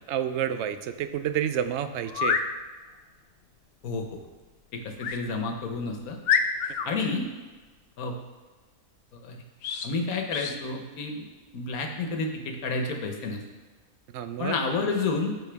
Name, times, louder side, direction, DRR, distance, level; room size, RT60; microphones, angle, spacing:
voice 1, 0.1-2.4 14.1-14.6, right 9 dB, 65° right, 10 dB, 0.7 m, -29 dB
sound 1, 2.1-2.5 5.0-5.2 5.7-5.8 6.2-6.9 9.6-9.9 10.3-10.6, left 7 dB, 65° left, 0.6 m, -26 dB
voice 2, 3.8-4.2 4.7-6.2 6.9-7.3 8.0-8.2 9.1-9.4 9.8-11.3 11.5-13.4 14.4-15.3, left 3 dB, 85° left, 3 dB, 1.5 m, -30 dB
13.5 x 4.5 x 3.4 m, 1.3 s
omnidirectional pair, 1.5 m